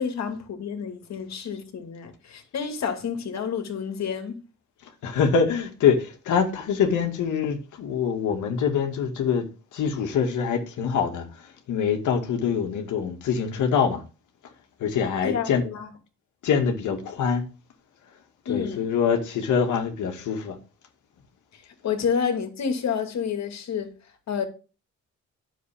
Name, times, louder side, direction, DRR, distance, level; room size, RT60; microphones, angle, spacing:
voice 1, 0.0-4.4 15.2-15.9 18.5-18.9 21.5-23.9 24.3-24.4, left 7 dB, 60° left, 2.4 m, -29 dB
voice 2, 5.0-9.4 9.7-11.3 11.7-14.0 14.8-15.6 16.4-17.4 18.5-20.6, left 6 dB, 80° left, 2.1 m, -24 dB
10.0 x 7.1 x 3.6 m
cardioid pair, 90°, 30 cm